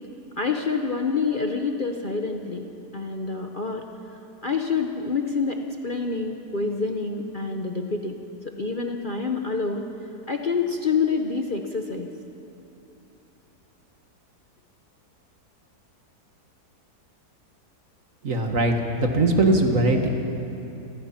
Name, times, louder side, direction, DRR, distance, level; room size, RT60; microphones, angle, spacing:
voice 1, 0.4-3.8 4.4-8.2 8.4-9.9 10.3-12.1, left 4 dB, 35° left, 3 dB, 1.0 m, -27 dB
voice 2, 18.2-20.1, right 2 dB, 50° right, 3 dB, 2.2 m, -21 dB
29.0 x 19.0 x 5.9 m, 3.0 s
omnidirectional pair, 1.8 m